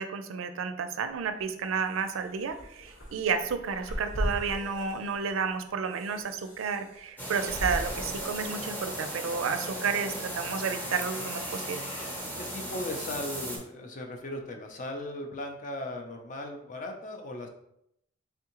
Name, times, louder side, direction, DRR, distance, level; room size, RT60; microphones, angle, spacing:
voice 1, 0.0-11.9, right 5 dB, 80° right, 9 dB, 0.4 m, -31 dB
sound 1, 1.1-12.2, equal, 75° left, 1.1 m, -40 dB
sound 2, 7.2-13.6, right 1 dB, 10° left, 0.8 m, -37 dB
voice 2, 12.2-17.5, left 1 dB, 40° left, 3 dB, 0.5 m, -37 dB
3.6 x 3.4 x 2.9 m, 0.77 s
head